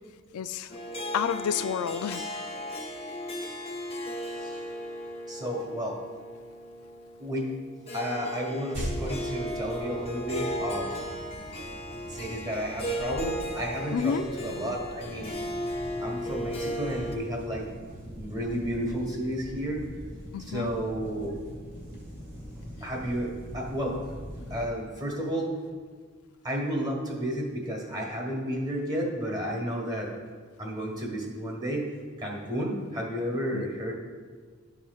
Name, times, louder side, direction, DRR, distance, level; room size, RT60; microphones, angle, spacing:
voice 1, 0.3-0.7 1.1-2.5 13.9-14.3 20.3-20.7 33.5-33.6, left 7 dB, 85° left, 12 dB, 0.3 m, -30 dB
Harp, 0.7-17.1, equal, 25° left, 0.8 m, -36 dB
voice 2, 5.3-6.0 7.2-7.5 7.9-11.0 12.1-15.3 16.0-17.7 18.0-19.8 20.5-21.4 22.8-24.0 24.5-25.5 26.4-30.1 30.6-31.9 32.2-34.0, equal, 20° right, -1 dB, 1.3 m, -32 dB
sound 1, 8.7-24.7, equal, 35° right, 1.8 m, -42 dB
11.5 x 5.8 x 2.3 m, 1.5 s
head